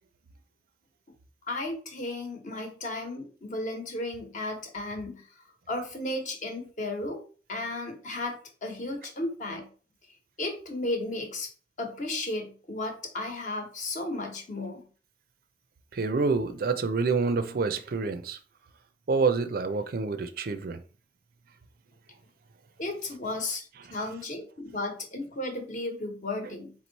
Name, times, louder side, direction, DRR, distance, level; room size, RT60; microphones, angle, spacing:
voice 1, 1.5-5.2 5.7-7.2 7.5-9.7 10.4-11.5 11.8-14.8 22.8-26.7, left 2 dB, 45° left, 1.1 m, -34 dB
voice 2, 15.9-18.4 19.1-20.8, right 4 dB, 55° right, 0.4 m, -27 dB
3.9 x 3.0 x 4.0 m
head